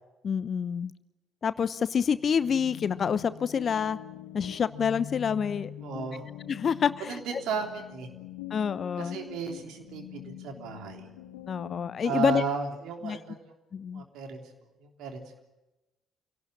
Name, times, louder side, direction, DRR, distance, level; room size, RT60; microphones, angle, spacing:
voice 1, 0.2-0.9 1.4-4.0 4.3-5.7 6.5-7.2 8.5-9.2 11.5-12.4 13.0-13.2 13.7-14.0, left 7 dB, 45° left, 16 dB, 0.9 m, -27 dB
sound 1, 2.1-12.1, left 11 dB, 70° left, 1.5 m, -44 dB
voice 2, 5.8-6.2 7.0-8.1 9.0-11.1 12.0-13.4 13.9-14.5 14.8-15.4, right 6 dB, 60° right, 4 dB, 3.4 m, -35 dB
26.0 x 18.0 x 9.9 m, 1.0 s
figure-of-eight pair, 45°, 0 cm